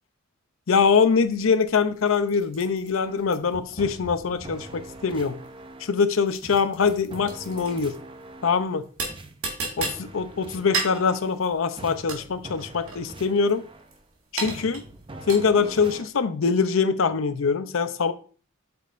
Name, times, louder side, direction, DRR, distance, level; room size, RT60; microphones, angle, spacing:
voice 1, 0.7-5.3 5.8-8.0 8.4-8.8 9.8-13.6 14.3-14.8 15.3-18.1, left 5 dB, 70° left, 11 dB, 0.6 m, -23 dB
sound 1, 0.8-15.8, right 3 dB, 85° right, 1.9 m, -36 dB
sound 2, 3.0-3.4 3.8-6.1 6.4-8.7 9.1-11.4 11.8-14.0 14.4-16.1, right 1 dB, 25° right, 0.6 m, -43 dB
8.3 x 6.1 x 2.5 m, 0.40 s
head